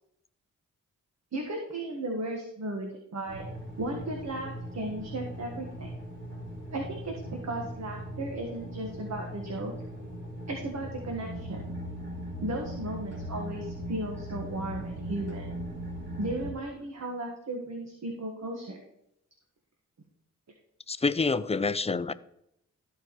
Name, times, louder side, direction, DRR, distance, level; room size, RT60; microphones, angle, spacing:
voice 1, 1.3-3.4 3.8-5.9 6.7-9.7 10.5-11.6 12.4-15.5 16.2-18.8, right 1 dB, 55° right, 1.6 m, -35 dB
sound 1, 3.3-16.5, equal, 35° right, 2.9 m, -39 dB
voice 2, 20.9-22.1, left 4 dB, 20° left, 0.5 m, -27 dB
13.5 x 4.7 x 3.1 m
cardioid pair, 50°, 32 cm